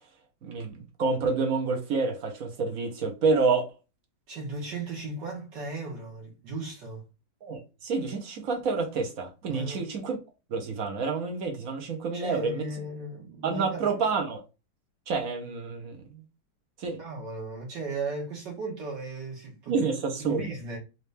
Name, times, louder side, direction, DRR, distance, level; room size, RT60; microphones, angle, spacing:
voice 1, 0.4-3.6 7.4-10.2 10.5-12.7 13.4-14.4 15.1-16.2 16.8-17.0 19.7-20.5, right 4 dB, 55° right, 1.3 m, -28 dB
voice 2, 4.3-7.1 9.5-9.9 12.1-13.8 17.0-19.9 20.2-20.8, right 3 dB, 75° right, 1.9 m, -36 dB
4.4 x 2.7 x 3.4 m
omnidirectional pair, 1.9 m